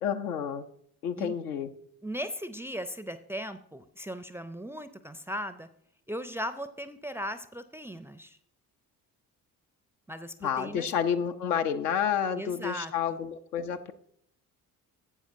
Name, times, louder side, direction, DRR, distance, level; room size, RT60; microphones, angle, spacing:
voice 1, 0.0-0.7 1.0-1.7 10.4-13.9, left 8 dB, 80° left, 8 dB, 0.6 m, -30 dB
voice 2, 2.0-5.7 6.1-8.4 10.1-10.9 12.3-13.2, equal, 5° right, 11 dB, 0.4 m, -38 dB
12.0 x 8.3 x 2.6 m, 0.67 s
figure-of-eight pair, 45°, 46 cm